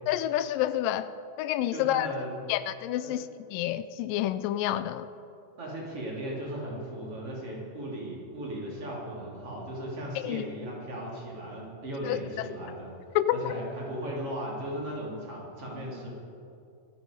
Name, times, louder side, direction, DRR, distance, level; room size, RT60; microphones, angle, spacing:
voice 1, 0.1-1.1 1.4-2.1 2.5-5.1 10.2-10.5 12.0-12.5 13.2-13.5, left 13 dB, 85° left, 13 dB, 2.2 m, -29 dB
voice 2, 1.7-2.4 3.0-3.2 5.6-16.1, right 1 dB, 45° right, -4 dB, 3.6 m, -37 dB
24.0 x 9.3 x 5.1 m, 2.6 s
omnidirectional pair, 3.9 m